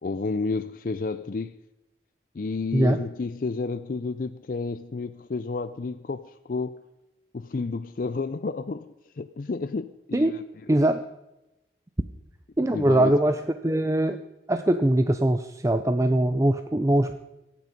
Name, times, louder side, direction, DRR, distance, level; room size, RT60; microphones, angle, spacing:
voice 1, 0.0-1.6 2.3-6.8 7.3-10.4 12.7-13.2, left 3 dB, 50° left, 0.4 m, -31 dB
voice 2, 10.7-11.0 12.6-14.2 14.5-17.2, right 1 dB, 15° right, 0.5 m, -22 dB
23.0 x 9.3 x 5.2 m
head